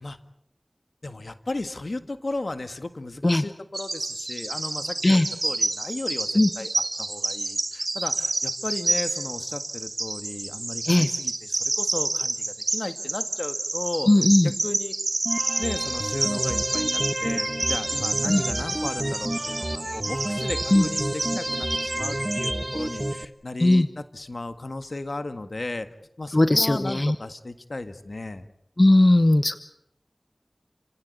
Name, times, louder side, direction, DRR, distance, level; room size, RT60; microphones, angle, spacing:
voice 1, 1.0-6.7 7.0-14.1 14.4-14.9 15.6-25.9 26.2-28.5, left 2 dB, 75° left, 10 dB, 1.7 m, -35 dB
Bird vocalization bird call bird song, 3.7-22.5, right 2 dB, 70° right, 1.2 m, -29 dB
voice 2, 14.1-14.5 18.3-18.4 20.7-20.8 23.6-23.9 26.3-27.1 28.8-29.6, left 1 dB, 45° left, 12 dB, 1.0 m, -18 dB
sound 1, 15.3-23.3, right 1 dB, 30° right, 1.4 m, -29 dB
30.0 x 17.0 x 8.3 m, 0.76 s
wide cardioid pair, 50°, 0 cm